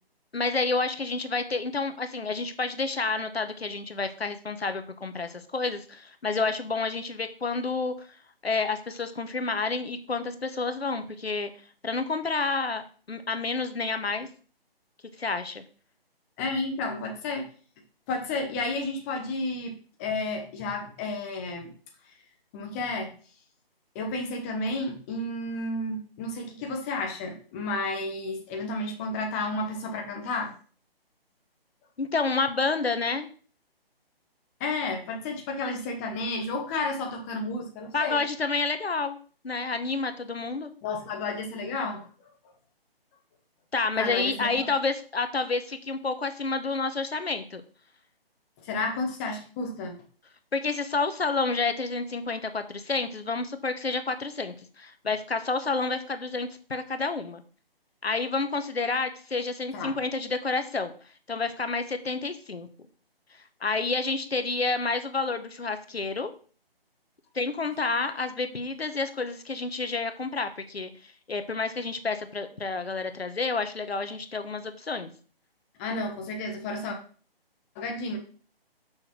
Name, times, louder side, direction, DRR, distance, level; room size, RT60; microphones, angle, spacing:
voice 1, 0.3-7.9 8.4-11.5 11.8-12.8 13.1-14.3 15.2-15.6 32.0-33.3 37.9-39.2 39.4-40.7 43.7-47.6 50.5-57.4 58.0-60.9 61.3-62.7 63.6-66.3 67.3-70.9 71.3-75.1, left 3 dB, 85° left, 9 dB, 1.2 m, -29 dB
voice 2, 16.4-17.5 18.1-21.7 22.5-23.1 23.9-30.5 34.6-38.2 40.8-42.3 44.0-44.7 48.6-50.0 59.7-60.0 75.8-77.0 77.7-78.2, left 2 dB, 15° left, 2 dB, 1.0 m, -32 dB
6.3 x 4.8 x 5.9 m, 0.41 s
figure-of-eight pair, 150°, 30 cm